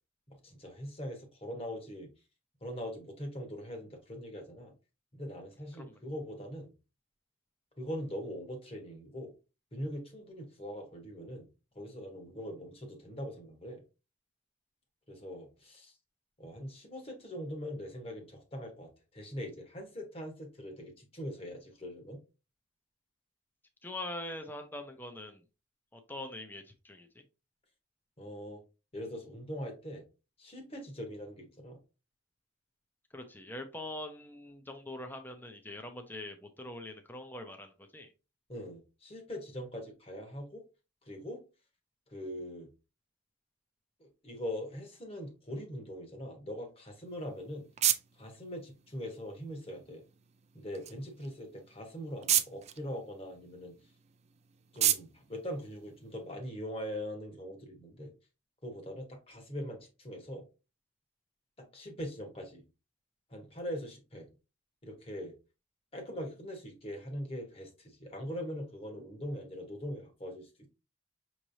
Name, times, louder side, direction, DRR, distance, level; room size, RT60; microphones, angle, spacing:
voice 1, 0.3-2.1 2.6-4.7 5.1-6.7 7.8-9.3 9.7-11.5 11.7-13.8 15.1-15.9 16.4-22.2 28.2-28.6 28.9-30.0 30.4-31.8 38.5-40.6 41.0-41.4 42.1-42.7 44.0-47.7 48.2-50.0 50.5-53.8 54.7-58.1 58.6-60.4 61.6-62.6 63.3-64.3 64.8-65.3 65.9-70.7, equal, 30° left, 3 dB, 1.2 m, -42 dB
voice 2, 23.8-25.4 25.9-27.2 33.1-38.1, left 1 dB, 10° left, 5 dB, 0.6 m, -43 dB
sound 1, 47.0-56.4, right 11 dB, 35° right, 0.4 m, -36 dB
5.8 x 3.1 x 2.7 m, 0.30 s
head